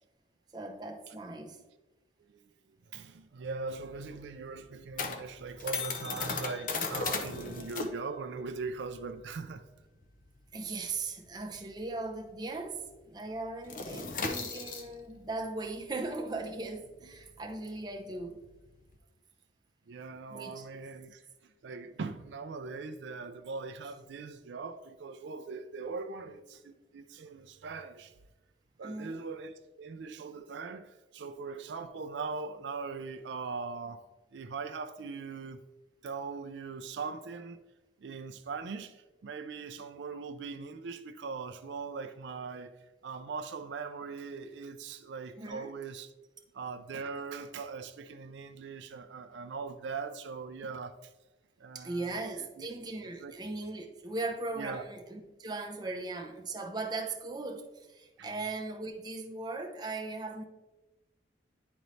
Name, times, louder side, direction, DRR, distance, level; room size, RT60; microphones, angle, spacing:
voice 1, 0.5-1.6 10.5-18.4 20.3-20.6 28.8-29.2 45.4-45.7 51.7-60.4, right 3 dB, 20° right, 0.7 m, -38 dB
voice 2, 2.9-9.7 19.9-28.1 28.8-34.0 34.3-35.6 36.0-37.6 38.0-42.8 43.0-46.1 46.5-51.1 51.6-52.1 52.6-52.7 53.2-53.3 54.6-54.8 58.2-58.3, right 4 dB, 70° right, 0.4 m, -40 dB
sound 1, 3.4-12.4 12.7-12.9 13.2-19.0, left 4 dB, 45° left, 0.7 m, -38 dB
10.5 x 4.0 x 3.2 m
head